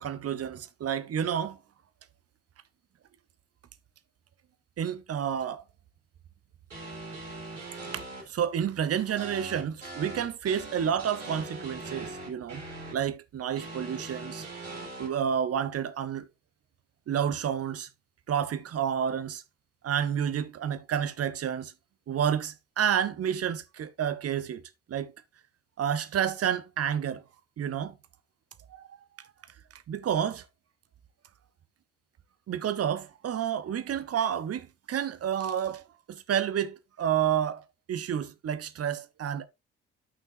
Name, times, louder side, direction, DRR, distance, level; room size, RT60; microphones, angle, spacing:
voice 1, 0.0-1.6 4.8-5.6 7.9-12.6 12.9-14.5 15.0-16.3 17.1-17.9 18.3-19.4 19.8-21.7 22.1-24.6 24.9-25.1 25.8-27.2 27.6-28.0 28.7-29.0 29.9-30.4 32.5-35.8 36.1-39.5, right 9 dB, 40° right, 1.0 m, -30 dB
sound 1, 6.7-8.2 9.2-12.9 13.6-15.1, right 2 dB, 90° right, 2.9 m, -41 dB
12.5 x 5.7 x 2.7 m
figure-of-eight pair, 45°, 36 cm